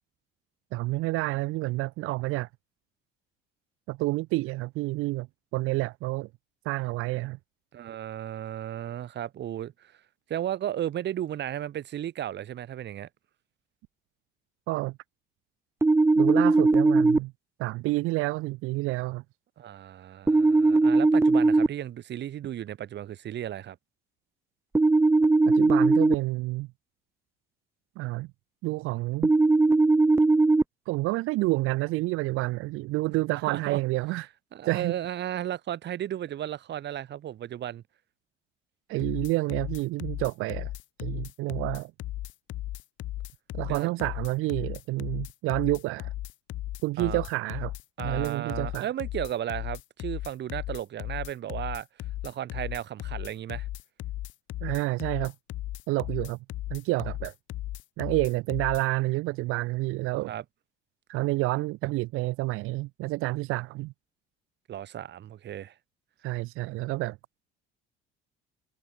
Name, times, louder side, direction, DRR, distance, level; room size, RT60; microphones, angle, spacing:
voice 1, 0.7-2.5 3.9-5.3 5.5-6.3 6.6-7.4 14.7-15.0 16.2-17.3 17.6-19.2 25.5-26.7 28.0-28.3 28.6-29.3 30.9-34.3 34.7-34.9 38.9-40.7 41.0-41.9 43.5-46.1 46.8-47.7 48.0-48.9 54.6-55.3 55.9-56.4 56.7-57.3 58.0-60.3 61.1-63.9 66.2-67.2, right 20 dB, 80° right, 3.1 m, -29 dB
voice 2, 7.7-9.9 10.3-13.1 19.6-23.8 33.4-33.8 34.5-37.8 43.7-43.9 47.0-47.2 48.0-51.9 52.2-53.7 60.3-60.4 64.7-65.7, right 11 dB, 55° right, 4.0 m, -34 dB
sound 1, 15.8-17.2 20.3-21.7 24.8-26.1 29.2-30.6, right 3 dB, 10° right, 0.7 m, -19 dB
sound 2, 39.0-58.8, left 15 dB, 65° left, 1.2 m, -36 dB
cardioid pair, 100°, 21 cm